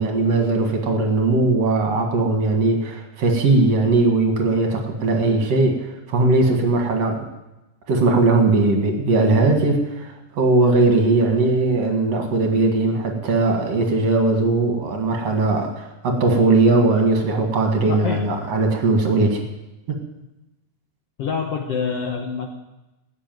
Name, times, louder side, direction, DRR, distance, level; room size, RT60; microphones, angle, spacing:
voice 1, 0.0-7.2 7.9-19.4 19.9-20.0, right 3 dB, 55° right, 3 dB, 2.7 m, -19 dB
voice 2, 17.9-18.2 21.2-22.5, left 6 dB, 60° left, 2 dB, 1.7 m, -26 dB
16.0 x 8.0 x 9.2 m, 1.0 s
omnidirectional pair, 3.8 m